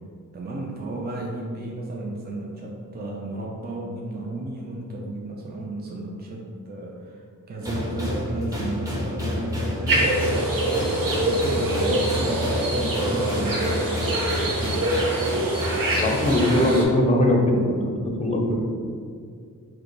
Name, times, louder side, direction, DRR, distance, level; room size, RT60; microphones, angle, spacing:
voice 1, 0.3-10.3 10.6-13.8 14.4-14.8, right 2 dB, 30° right, -2 dB, 0.5 m, -33 dB
sound 1, 7.6-16.5, left 1 dB, 10° right, 1.0 m, -29 dB
sound 2, 9.9-16.8, right 1 dB, 75° right, 0.7 m, -25 dB
voice 2, 16.0-17.8 18.2-18.6, left 1 dB, 20° left, 0 dB, 0.7 m, -20 dB
4.8 x 2.2 x 3.1 m, 2.2 s
cardioid pair, 45°, 34 cm